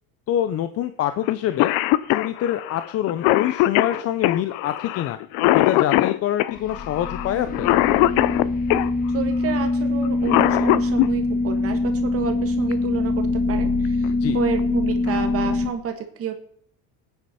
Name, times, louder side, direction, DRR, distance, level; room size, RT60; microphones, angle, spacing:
voice 1, 0.3-1.7 2.1-5.2 5.5-7.7 14.2-14.4, left 11 dB, 40° left, 10 dB, 0.6 m, -25 dB
Cough, 1.3-1.4 1.6-8.9 10.0-11.1 12.7-12.8 13.8-14.1 14.6-14.7 15.1-15.5, left 17 dB, 80° left, 0.7 m, -21 dB
sound 1, 6.5-15.7, left 3 dB, 20° left, 1.5 m, -24 dB
voice 2, 9.1-16.4, right 7 dB, 40° right, 6 dB, 1.5 m, -30 dB
24.5 x 9.5 x 4.2 m, 0.66 s
cardioid pair, 165°, 37 cm